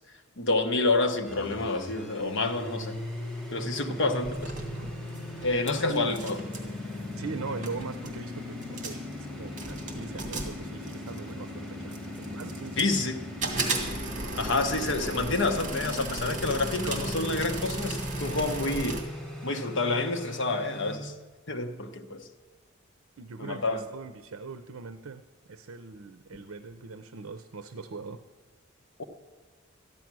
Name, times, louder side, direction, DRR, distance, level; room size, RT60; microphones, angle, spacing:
voice 1, 0.4-3.0 3.5-4.5 5.4-6.4 12.8-13.2 14.3-19.0 19.4-21.1 21.5-22.3 23.4-23.8 29.0-29.1, left 3 dB, 60° left, 6 dB, 1.1 m, -28 dB
sound 1, 1.2-21.0, left 1 dB, 5° left, 1.9 m, -38 dB
sound 2, 4.2-5.7 6.0-6.7 7.4-7.5 7.6-8.2 8.6-9.1 9.6-11.3 11.9-13.0 13.4-19.0, right 3 dB, 35° right, 2.3 m, -36 dB
voice 2, 5.8-6.2 7.2-12.9 23.2-28.2, right 4 dB, 70° right, 10 dB, 0.6 m, -41 dB
13.5 x 10.5 x 6.1 m, 1.4 s
head